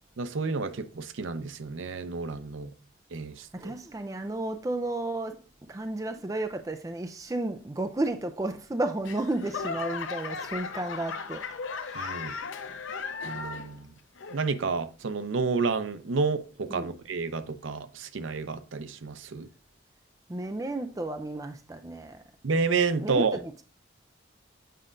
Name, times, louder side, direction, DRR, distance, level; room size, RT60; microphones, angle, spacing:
voice 1, 0.2-2.7 3.1-3.7 11.9-12.4 13.2-13.9 14.3-19.5 22.4-23.4, right 4 dB, 80° right, 0.6 m, -30 dB
voice 2, 3.5-5.4 5.7-11.4 11.9-12.0 16.7-16.9 20.3-22.2 23.0-23.6, right 2 dB, 15° right, 0.3 m, -32 dB
Laughter / Clapping / Crowd, 9.0-13.8 14.2-14.7 15.3-15.4, left 5 dB, 80° left, 0.6 m, -36 dB
7.6 x 4.9 x 2.5 m
head